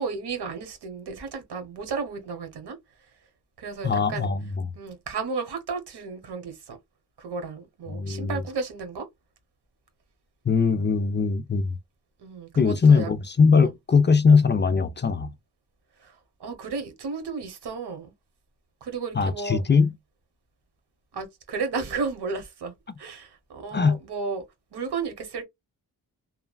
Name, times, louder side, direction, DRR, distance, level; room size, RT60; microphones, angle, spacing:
voice 1, 0.0-2.8 3.6-4.3 4.8-6.8 7.2-9.1 12.2-13.1 13.5-13.7 16.0-18.1 18.8-19.6 21.1-24.4 24.7-25.4, right 4 dB, 90° right, 1.1 m, -33 dB
voice 2, 3.8-4.7 7.9-8.4 10.5-11.7 12.6-15.3 19.1-19.9 23.7-24.0, left 5 dB, 30° left, 0.4 m, -21 dB
3.1 x 2.2 x 2.2 m
wide cardioid pair, 85°, 39 cm